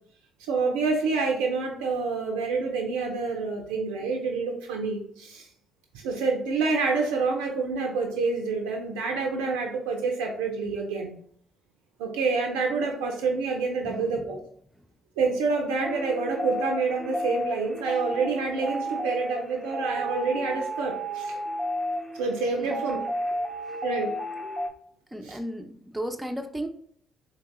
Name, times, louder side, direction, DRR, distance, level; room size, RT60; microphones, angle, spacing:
voice 1, 0.5-5.5 5.9-11.1 12.0-14.4 15.2-21.4 22.1-23.0 23.8-24.2 25.2-25.4, right 4 dB, 80° right, 2 dB, 0.4 m, -27 dB
voice 2, 13.8-14.2 22.6-22.8 25.1-26.7, equal, 10° right, 6 dB, 0.5 m, -35 dB
sound 1, 15.8-24.7, equal, 20° left, 0.9 m, -32 dB
3.6 x 2.8 x 2.9 m, 0.62 s
hypercardioid pair, 45°, 0 cm